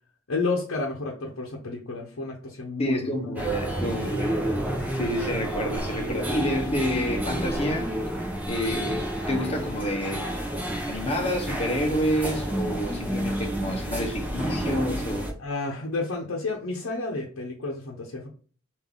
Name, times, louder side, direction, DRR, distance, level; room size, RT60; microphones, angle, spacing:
voice 1, 0.3-3.1 15.4-18.3, left 3 dB, 85° left, 0.8 m, -31 dB
voice 2, 2.8-4.5 4.9-7.9 8.5-10.3 10.9-15.3, equal, 30° left, 0.9 m, -29 dB
sound 1, 3.4-15.3, right 1 dB, 10° right, 0.8 m, -30 dB
3.5 x 2.7 x 3.7 m
head